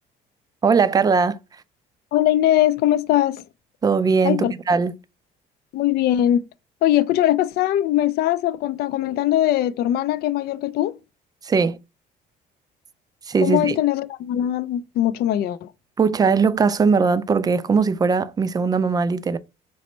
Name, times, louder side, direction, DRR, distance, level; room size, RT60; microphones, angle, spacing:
voice 1, 0.6-1.4 3.8-4.9 11.4-11.8 13.3-13.8 16.0-19.4, right 5 dB, 25° right, 0.3 m, -19 dB
voice 2, 2.1-3.4 4.2-4.5 5.7-6.4 6.8-11.0 13.4-15.7, left 12 dB, 70° left, 0.4 m, -21 dB
4.2 x 3.0 x 3.1 m
cardioid pair, 110°, 17 cm